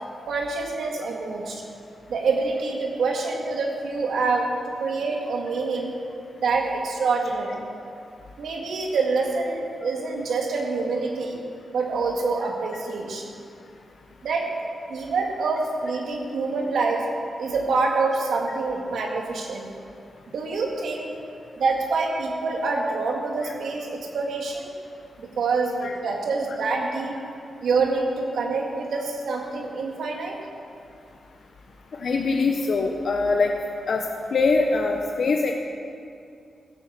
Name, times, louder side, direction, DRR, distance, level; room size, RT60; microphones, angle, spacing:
voice 1, 0.3-1.6 2.1-6.0 6.4-7.6 8.4-11.4 11.7-13.2 14.2-14.5 14.9-17.0 17.4-19.7 20.3-21.1 21.6-24.7 25.2-27.2 27.6-30.4, right 4 dB, 80° right, 1 dB, 2.0 m, -26 dB
voice 2, 32.0-33.5 33.9-34.0 34.3-35.5, left 4 dB, 65° left, 2 dB, 0.9 m, -22 dB
15.0 x 7.2 x 7.4 m, 2.5 s
cardioid pair, 80°, 0 cm